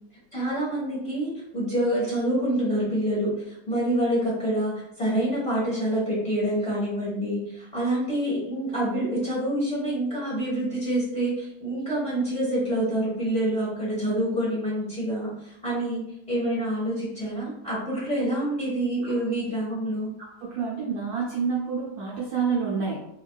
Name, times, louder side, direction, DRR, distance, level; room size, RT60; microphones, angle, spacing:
voice 1, 0.3-16.0 16.3-20.1, right 1 dB, 25° left, -8 dB, 1.0 m, -27 dB
voice 2, 20.4-23.1, right 5 dB, 85° right, -5 dB, 0.8 m, -28 dB
3.5 x 2.2 x 2.3 m, 0.81 s
omnidirectional pair, 2.3 m